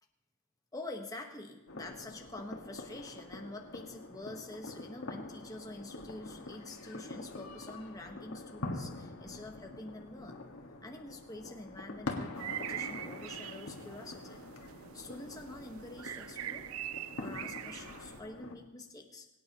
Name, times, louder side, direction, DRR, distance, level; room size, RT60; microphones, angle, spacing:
voice 1, 0.7-10.5 10.8-14.4 14.9-16.7 17.2-19.3, left 2 dB, 15° left, 2 dB, 1.1 m, -46 dB
sound 1, 1.7-18.5, left 2 dB, 85° left, 1.6 m, -45 dB
sound 2, 12.4-18.2, right 11 dB, 75° right, 0.4 m, -43 dB
23.0 x 8.8 x 2.9 m, 1.0 s
head